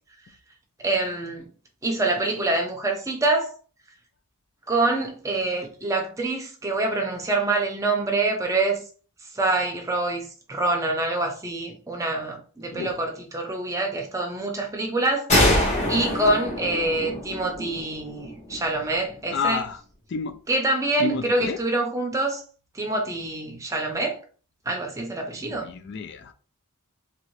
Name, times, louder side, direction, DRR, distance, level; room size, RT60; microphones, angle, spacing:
voice 1, 0.8-1.5 1.8-3.5 4.7-8.8 9.3-15.6 15.9-19.6 20.5-22.4 22.7-24.2 24.7-25.7, right 2 dB, 15° right, 0.5 m, -26 dB
voice 2, 12.7-13.0 19.3-19.8 20.1-20.4 21.0-21.6 25.4-26.3, left 5 dB, 50° left, 0.4 m, -30 dB
sound 1, 15.3-18.8, left 1 dB, 30° left, 0.9 m, -24 dB
2.8 x 2.6 x 3.1 m
head